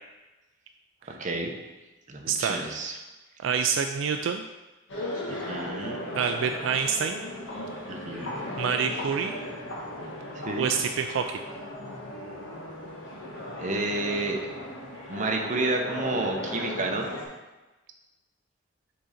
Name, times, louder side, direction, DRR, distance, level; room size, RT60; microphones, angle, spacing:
voice 1, 1.2-1.5 2.1-3.0 5.3-6.0 7.9-8.3 10.5-10.7 13.6-14.4 15.1-17.1, right 2 dB, 40° right, 1 dB, 0.8 m, -30 dB
voice 2, 2.3-2.6 3.4-4.4 6.2-7.2 8.1-8.3 8.6-9.4 10.6-11.4, right 6 dB, 75° right, 6 dB, 0.3 m, -27 dB
sound 1, 4.9-17.3, left 1 dB, 85° left, 1.6 m, -36 dB
6.5 x 3.8 x 4.2 m, 1.1 s
head